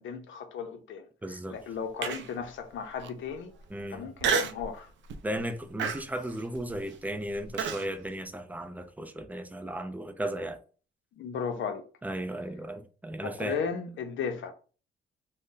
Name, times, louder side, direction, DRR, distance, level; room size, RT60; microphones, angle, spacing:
voice 1, 0.0-1.1 1.5-3.5 3.9-4.9 11.1-11.8 13.2-14.5, left 6 dB, 75° left, 0.6 m, -35 dB
voice 2, 1.2-1.6 3.7-4.1 5.2-10.6 12.0-13.6, right 1 dB, 10° right, 0.4 m, -35 dB
Human voice, 2.0-2.4 3.0-3.1 4.2-4.7 5.1-5.4 5.8-7.9, right 6 dB, 70° right, 0.4 m, -30 dB
2.6 x 2.1 x 3.7 m
cardioid pair, 95°, 20 cm